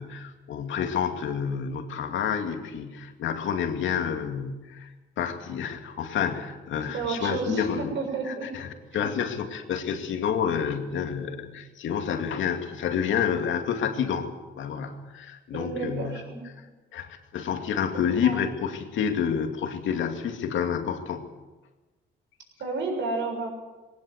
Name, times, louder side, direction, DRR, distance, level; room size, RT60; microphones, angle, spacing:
voice 1, 0.0-4.9 5.2-7.9 8.2-8.7 8.9-14.3 14.6-16.3 16.9-21.3, left 7 dB, 75° left, 5 dB, 2.4 m, -29 dB
voice 2, 6.8-8.5 15.5-16.4 17.9-18.4 22.6-23.5, right 4 dB, 70° right, 2 dB, 7.3 m, -31 dB
20.0 x 18.0 x 8.2 m, 1.2 s
cardioid pair, 90°, 20 cm